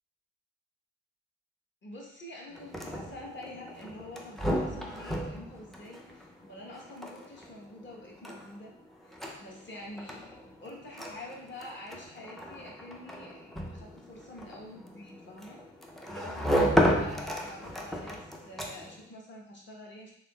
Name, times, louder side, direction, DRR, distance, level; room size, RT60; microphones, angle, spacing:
voice 1, 1.8-8.7 9.0-10.3 10.6-15.6 16.1-20.1, left 1 dB, 40° left, -2 dB, 1.0 m, -47 dB
sound 1, 2.5-19.1, equal, ahead, 0.4 m, -34 dB
3.6 x 3.1 x 2.2 m, 0.71 s
cardioid pair, 90°, 30 cm